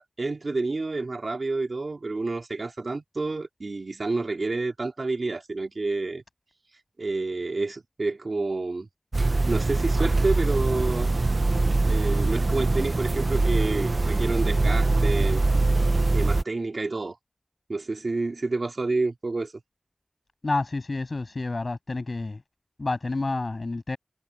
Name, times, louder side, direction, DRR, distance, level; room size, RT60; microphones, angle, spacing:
voice 1, 0.0-6.2 7.0-8.9 9.4-11.1 11.8-15.5 16.1-17.2 17.7-19.5, right 3 dB, 90° right, 2.7 m, -29 dB
sound 1, 9.1-16.4, right 2 dB, 70° right, 0.8 m, -23 dB
voice 2, 20.4-22.4 22.8-24.0, left 3 dB, 75° left, 7.6 m, -29 dB
wide cardioid pair, 40°, 0 cm